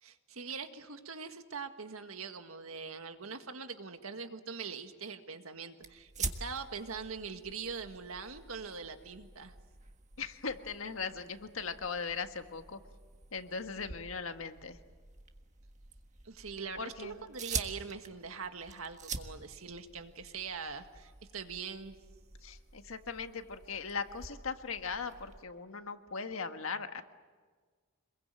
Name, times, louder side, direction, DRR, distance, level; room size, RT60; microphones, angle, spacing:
voice 1, 0.0-9.5 16.2-21.9, right 5 dB, 85° right, 7 dB, 1.8 m, -42 dB
sound 1, 5.8-25.4, right 5 dB, 35° right, 1.5 m, -46 dB
voice 2, 10.2-12.8 13.3-14.8 16.8-17.2 22.4-27.0, left 5 dB, 75° left, 7 dB, 1.5 m, -39 dB
26.5 x 22.0 x 9.0 m, 1.5 s
head